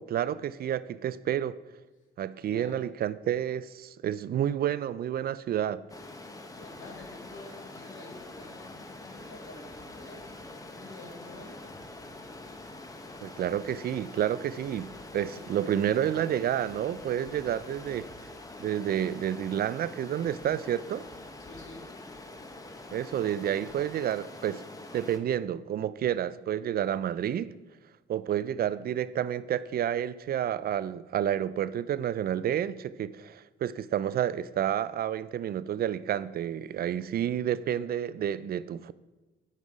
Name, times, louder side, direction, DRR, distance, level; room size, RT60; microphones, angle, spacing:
voice 1, 0.0-1.6 2.2-5.8 13.2-18.1 18.6-21.1 22.9-24.6 24.9-27.5 28.1-38.9, right 10 dB, 50° right, 0.4 m, -30 dB
voice 2, 2.4-2.9 6.4-11.8 21.4-21.8, left 2 dB, 80° left, 2.4 m, -49 dB
Stream, 5.9-25.2, left 2 dB, 15° left, 0.8 m, -45 dB
8.4 x 5.4 x 4.9 m
cardioid pair, 90°, 20 cm